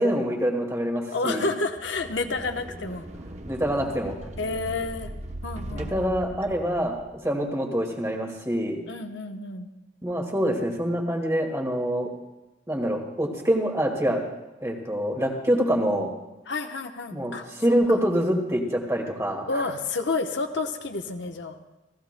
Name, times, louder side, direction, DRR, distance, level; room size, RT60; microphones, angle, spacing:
voice 1, 0.0-1.5 3.5-4.2 5.7-7.0 7.2-8.8 10.0-12.1 12.7-14.2 14.6-16.1 17.1-19.7, equal, 15° right, 1 dB, 2.0 m, -25 dB
voice 2, 1.1-3.1 4.4-5.1 5.4-6.1 8.9-9.7 16.5-17.5 17.9-18.0 19.5-21.6, left 3 dB, 70° left, 5 dB, 1.0 m, -30 dB
sound 1, 1.7-7.3, right 1 dB, 35° right, 0.9 m, -39 dB
30.0 x 15.0 x 2.2 m, 1.0 s
head